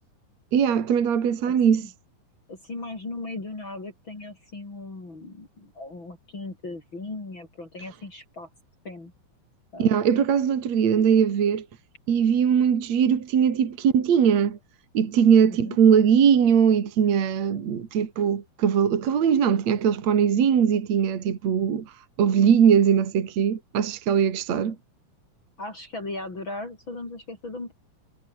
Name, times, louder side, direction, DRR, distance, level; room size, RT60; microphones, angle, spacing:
voice 1, 0.5-1.9 9.8-11.7 12.1-14.6 14.9-21.9 22.2-24.8, right 7 dB, 55° right, 3.3 m, -20 dB
voice 2, 2.5-8.5 8.8-9.1 9.7-9.9 15.6-15.8 25.6-27.7, left 2 dB, 35° left, 5.8 m, -37 dB
omnidirectional pair, 4.0 m